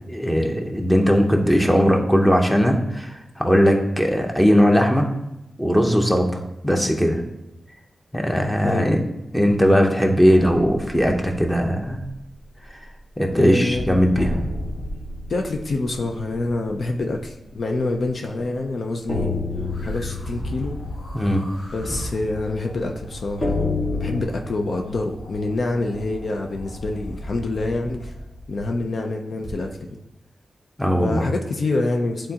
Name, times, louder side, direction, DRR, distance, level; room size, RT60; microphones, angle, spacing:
voice 1, 0.1-5.1 5.6-7.2 8.1-9.0 9.3-12.0 13.2-14.4 21.1-21.4 30.8-31.2, equal, 5° left, 2 dB, 0.8 m, -19 dB
sound 1, 10.3-12.2 12.6-12.9 13.3-13.4 14.2-18.0 18.4-18.5 19.1-24.2, left 2 dB, 40° left, 1.5 m, -31 dB
voice 2, 13.3-14.0 15.3-19.4 19.8-20.8 21.7-28.1 28.5-29.9 31.0-32.3, left 2 dB, 60° left, 3 dB, 0.6 m, -26 dB
sound 2, 13.5-15.1 19.5-28.8 29.4-29.5, equal, 85° left, 1.5 m, -36 dB
11.0 x 3.8 x 2.9 m, 0.91 s
wide cardioid pair, 130°, 0 cm